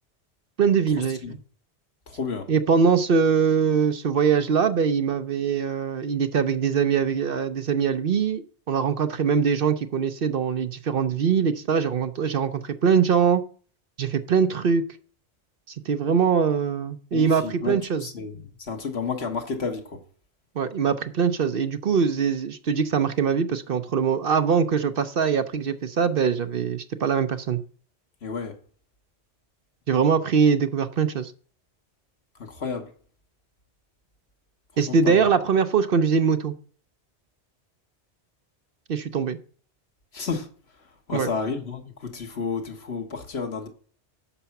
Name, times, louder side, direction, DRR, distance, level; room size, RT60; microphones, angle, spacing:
voice 1, 0.6-1.4 2.5-13.4 14.0-14.9 15.9-18.0 20.6-27.6 29.9-31.3 34.8-36.5 38.9-39.4 41.1-41.3, right 6 dB, 60° right, 0.8 m, -22 dB
voice 2, 2.1-2.5 17.1-20.0 28.2-28.6 32.4-32.9 34.9-35.2 40.1-40.5 41.1-43.7, left 5 dB, 65° left, 1.6 m, -31 dB
10.0 x 6.8 x 5.8 m
omnidirectional pair, 1.2 m